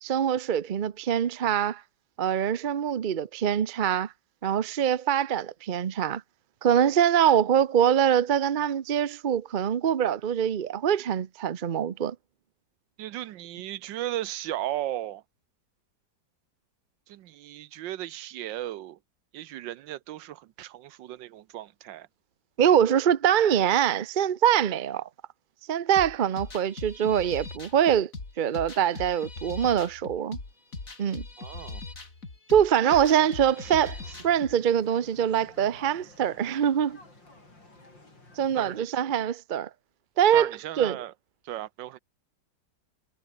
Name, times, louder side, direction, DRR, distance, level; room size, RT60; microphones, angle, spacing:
voice 1, 0.0-1.8 2.2-4.1 4.4-6.2 6.6-12.2 22.6-25.1 25.7-28.1 28.4-30.4 31.0-31.3 32.5-34.0 34.2-37.0 38.4-39.7 40.2-41.0, right 9 dB, 60° right, 0.5 m, -24 dB
voice 2, 13.0-15.2 17.1-19.0 19.3-22.1 31.4-31.8 38.6-39.0 40.3-41.1 41.4-42.0, right 13 dB, 80° right, 1.5 m, -36 dB
sound 1, 26.0-34.6, left 3 dB, 45° left, 4.0 m, -40 dB
sound 2, 33.1-38.8, left 2 dB, 85° left, 8.6 m, -54 dB
omnidirectional pair, 2.0 m